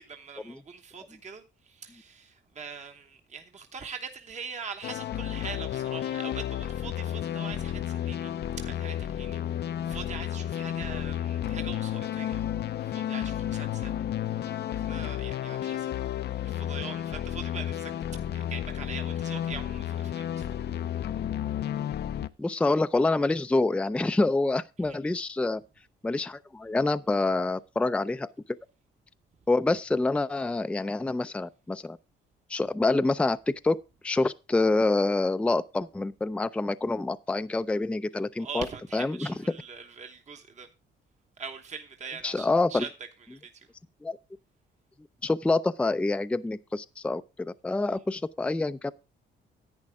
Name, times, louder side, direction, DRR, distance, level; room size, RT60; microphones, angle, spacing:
voice 1, 0.0-8.3 8.6-12.5 12.8-14.0 14.3-15.9 16.4-17.9 18.3-20.5 24.8-25.0 38.4-40.7 41.4-42.9 43.3-43.7, right 6 dB, 35° right, 1.1 m, -42 dB
sound 1, 4.8-22.3, left 10 dB, 55° left, 0.5 m, -32 dB
voice 2, 22.4-25.6 26.0-28.3 29.5-32.0 32.5-33.8 34.0-38.7 38.9-39.3 42.2-42.8 44.0-44.2 45.2-48.9, left 2 dB, 5° left, 0.4 m, -26 dB
10.5 x 8.8 x 3.5 m
cardioid pair, 90°, 20 cm